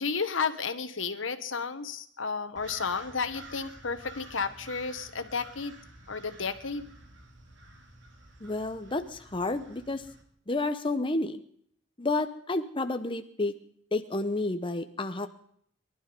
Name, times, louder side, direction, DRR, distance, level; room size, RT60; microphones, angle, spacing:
voice 1, 0.0-5.8 6.1-6.9, left 5 dB, 85° left, 10 dB, 1.5 m, -32 dB
sound 1, 2.6-10.2, right 2 dB, 65° right, 2.9 m, -50 dB
voice 2, 8.4-10.0 10.5-11.4 12.0-13.5 13.9-15.3, left 2 dB, 25° left, 8 dB, 0.9 m, -30 dB
22.5 x 12.0 x 5.3 m, 0.64 s
head